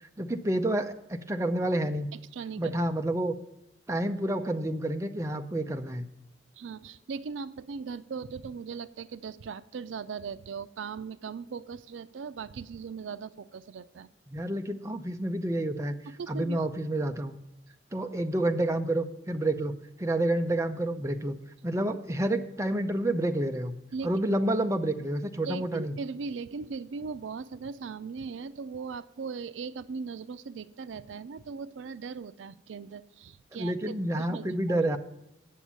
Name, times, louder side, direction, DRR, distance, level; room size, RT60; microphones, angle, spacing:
voice 1, 0.2-2.1 2.6-3.3 3.9-6.1 14.3-15.9 16.3-17.4 17.9-21.4 21.6-23.8 24.0-25.9 33.5-35.0, right 1 dB, 15° right, 6 dB, 0.6 m, -29 dB
voice 2, 2.1-2.7 6.6-14.1 16.2-16.7 23.9-24.1 25.4-34.8, right 5 dB, 90° right, 14 dB, 0.4 m, -39 dB
8.4 x 7.2 x 7.3 m, 0.88 s
head